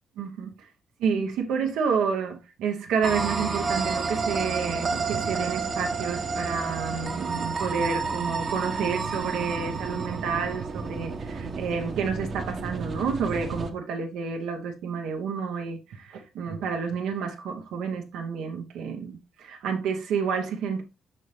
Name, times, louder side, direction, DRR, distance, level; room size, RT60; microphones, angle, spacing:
voice 1, 0.2-0.5 1.0-20.8, right 6 dB, 85° right, 1.1 m, -29 dB
sound 1, 3.0-13.7, right 4 dB, 45° right, 1.0 m, -30 dB
5.5 x 5.5 x 3.2 m
cardioid pair, 90°, 0 cm